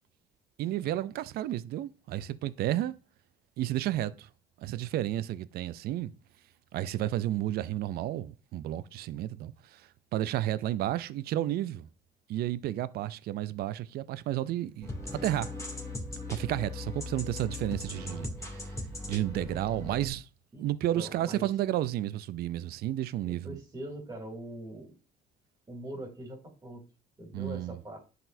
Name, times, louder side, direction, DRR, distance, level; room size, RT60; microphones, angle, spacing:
voice 1, 0.6-3.0 3.6-4.3 4.6-6.1 6.7-11.9 12.3-15.6 16.3-18.7 19.1-20.3 20.6-23.6 27.3-27.8, right 13 dB, 65° right, 0.4 m, -32 dB
sound 1, 14.8-20.1, left 2 dB, 15° left, 2.4 m, -38 dB
voice 2, 20.9-21.5 23.3-24.9 25.7-26.8 27.2-28.0, right 1 dB, 20° right, 2.7 m, -42 dB
11.0 x 4.1 x 2.6 m
cardioid pair, 110°, 17 cm